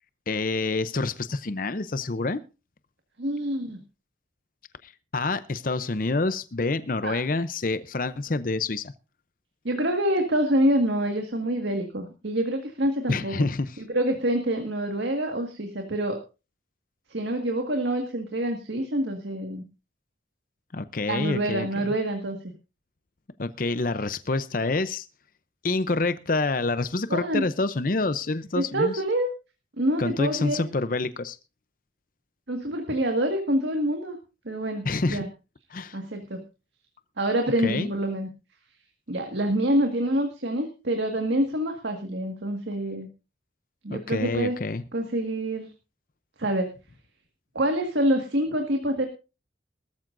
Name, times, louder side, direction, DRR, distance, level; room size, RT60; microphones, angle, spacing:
voice 1, 0.3-2.4 4.8-8.9 13.1-13.8 20.7-21.7 23.4-25.1 25.6-29.0 30.0-31.4 34.8-35.2 35.7-36.0 37.6-37.9 43.9-44.8, left 3 dB, 45° left, 13 dB, 0.6 m, -27 dB
voice 2, 3.2-3.8 7.0-7.2 9.6-13.5 13.8-16.2 17.1-19.6 21.1-22.5 27.1-27.5 28.6-29.3 29.8-30.6 32.5-34.2 34.5-35.3 35.9-36.4 37.2-38.3 39.1-43.1 43.8-44.6 44.9-45.7 46.4-46.7 47.6-49.1, right 1 dB, 70° right, 4 dB, 1.8 m, -26 dB
19.5 x 13.5 x 2.6 m, 0.31 s
head